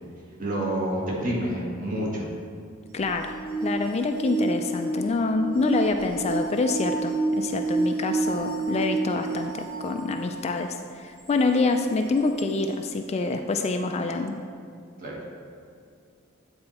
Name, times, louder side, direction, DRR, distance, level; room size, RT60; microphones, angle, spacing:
voice 1, 0.4-2.3 15.0-15.2, right 1 dB, 40° right, -4 dB, 1.5 m, -28 dB
voice 2, 2.9-3.3 3.6-14.4, left 3 dB, 30° left, 6 dB, 0.3 m, -26 dB
sound 1, 2.9-10.6 11.3-11.4 12.4-12.5, right 3 dB, 90° right, 1.3 m, -29 dB
8.8 x 4.3 x 4.2 m, 2.3 s
head